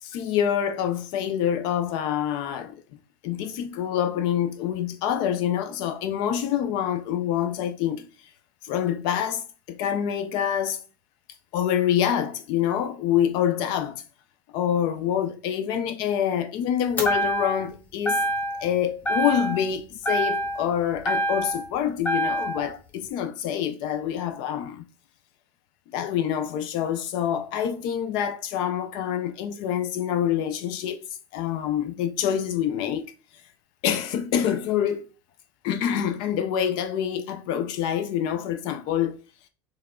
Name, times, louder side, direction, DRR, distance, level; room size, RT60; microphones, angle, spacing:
voice 1, 0.0-2.8 3.2-8.1 8.6-10.8 11.5-14.0 14.5-18.2 18.6-24.9 25.9-31.0 31.3-33.1 33.8-35.1 35.6-39.2, left 9 dB, 55° left, 0.4 m, -26 dB
sound 1, 17.0-17.7 18.1-18.7 19.0-19.7 20.0-21.7 22.0-22.7, right 1 dB, 20° left, 0.9 m, -26 dB
4.6 x 3.2 x 3.6 m
supercardioid pair, 140°, 9 cm